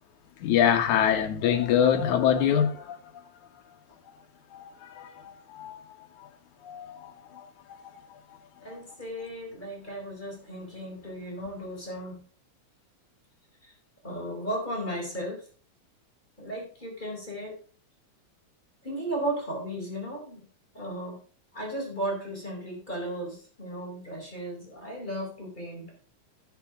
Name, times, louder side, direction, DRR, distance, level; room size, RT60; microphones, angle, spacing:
voice 1, 0.4-3.1 4.1-4.2 4.5-5.8 6.2-6.3 6.6-8.4 8.7-8.8, left 9 dB, 75° left, 2.6 m, -26 dB
voice 2, 8.6-12.2 13.6-13.7 14.0-15.4 16.4-17.6 18.8-20.4 20.7-21.2 21.5-25.9, right 1 dB, 15° left, 4.4 m, -35 dB
12.0 x 8.3 x 3.6 m
omnidirectional pair, 3.5 m